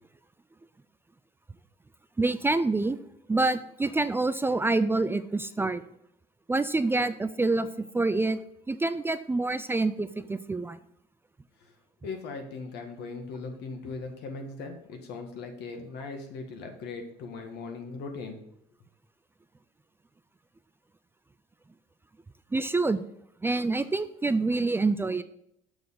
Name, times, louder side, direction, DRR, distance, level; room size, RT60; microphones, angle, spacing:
voice 1, 2.2-3.0 3.3-5.8 6.5-8.4 8.7-10.8 22.5-23.0 23.4-25.2, right 3 dB, 15° right, 12 dB, 0.3 m, -26 dB
voice 2, 12.0-18.4, left 4 dB, 80° left, 4 dB, 1.6 m, -39 dB
6.9 x 6.2 x 3.8 m, 0.74 s
cardioid pair, 110°, 17 cm